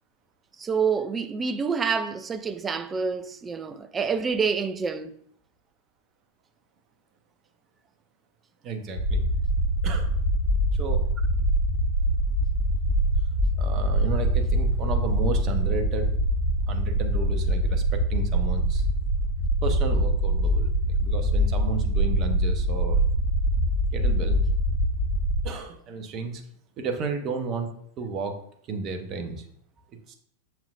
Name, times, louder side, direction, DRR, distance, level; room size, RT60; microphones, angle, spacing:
voice 1, 0.6-5.1, right 5 dB, 20° right, 0.5 m, -27 dB
voice 2, 8.6-9.2 9.8-10.1 10.7-11.0 13.6-16.1 16.7-18.9 19.6-23.0 23.9-24.4 25.4-26.4 26.8-27.7 28.0-28.4 28.7-29.5 30.1-30.2, right 3 dB, 35° right, 1.1 m, -32 dB
sound 1, 9.0-25.5, right 1 dB, 70° left, 2.1 m, -24 dB
7.0 x 5.9 x 2.6 m
figure-of-eight pair, 90°, 0 cm